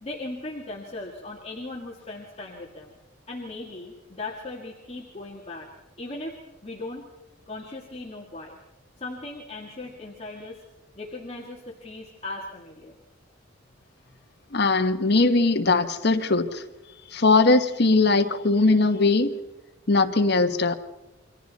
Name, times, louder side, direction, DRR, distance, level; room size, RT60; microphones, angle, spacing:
voice 1, 0.0-3.0 3.3-5.7 6.0-7.1 7.5-8.6 9.0-10.6 11.0-13.0 15.0-15.2, left 2 dB, 30° left, -2 dB, 2.0 m, -38 dB
voice 2, 14.5-16.6 17.1-19.4 19.9-20.7, left 3 dB, 55° left, 6 dB, 1.2 m, -20 dB
28.5 x 24.0 x 4.2 m, 1.0 s
head